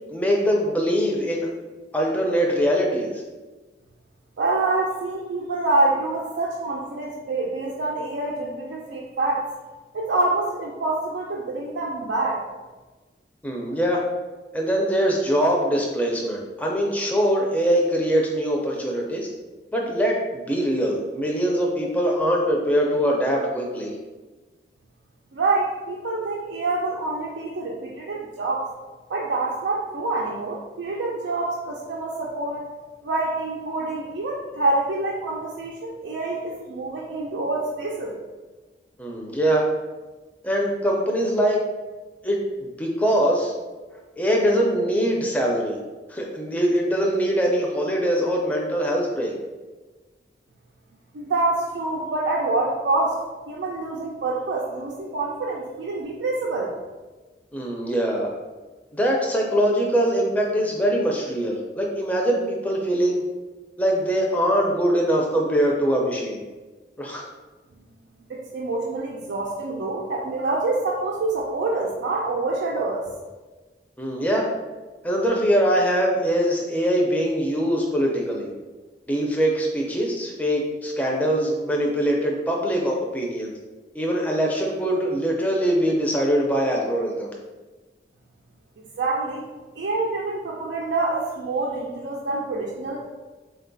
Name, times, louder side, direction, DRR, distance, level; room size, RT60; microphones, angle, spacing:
voice 1, 0.1-1.5 1.9-3.1 13.4-14.0 14.5-19.3 19.7-23.9 39.0-39.6 40.4-41.6 42.2-43.5 44.2-45.8 46.1-49.3 57.5-58.3 58.9-63.2 63.8-66.4 67.0-67.2 74.0-74.5 75.0-78.5 79.1-83.5 83.9-87.3, equal, 10° left, -1 dB, 0.4 m, -22 dB
voice 2, 4.4-9.5 9.9-12.4 25.3-28.7 29.1-32.7 33.0-38.1 51.1-53.2 53.5-56.7 68.3-73.1 88.8-89.4 89.8-93.1, right 2 dB, 85° right, -3 dB, 0.4 m, -26 dB
4.0 x 2.3 x 3.8 m, 1.2 s
head